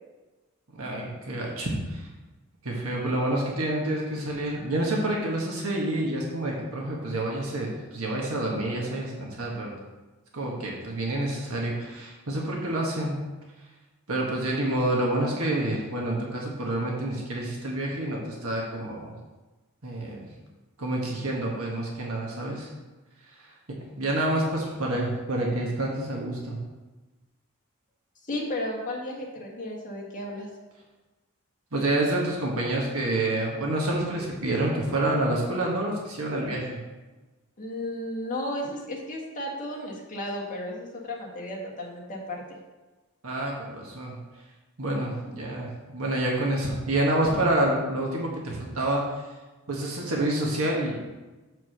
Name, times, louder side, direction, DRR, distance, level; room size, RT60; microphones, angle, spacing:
voice 1, 0.7-2.1 2.6-9.7 10.3-13.1 14.1-19.1 19.8-20.3 20.8-22.7 23.4-23.5 24.0-26.6 31.7-36.8 43.2-44.2 44.8-49.0 49.7-51.1, right 1 dB, 65° right, -2 dB, 1.5 m, -28 dB
voice 2, 28.3-30.5 37.6-42.6, left 1 dB, 35° left, -2 dB, 1.7 m, -34 dB
6.7 x 4.8 x 6.6 m, 1.2 s
head